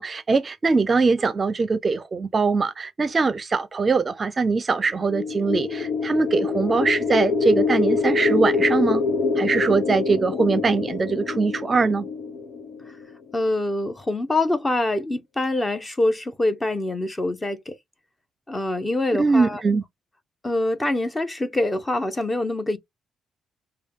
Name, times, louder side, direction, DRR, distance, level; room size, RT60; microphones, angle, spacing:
voice 1, 0.0-9.0 9.4-12.1 19.2-19.8, right 4 dB, 35° right, 0.6 m, -22 dB
sound 1, 5.0-13.1, left 4 dB, 70° left, 1.0 m, -25 dB
voice 2, 13.3-17.8 18.5-19.6 20.4-22.8, left 2 dB, 20° left, 1.1 m, -25 dB
6.2 x 2.3 x 3.6 m
cardioid pair, 90°, 0 cm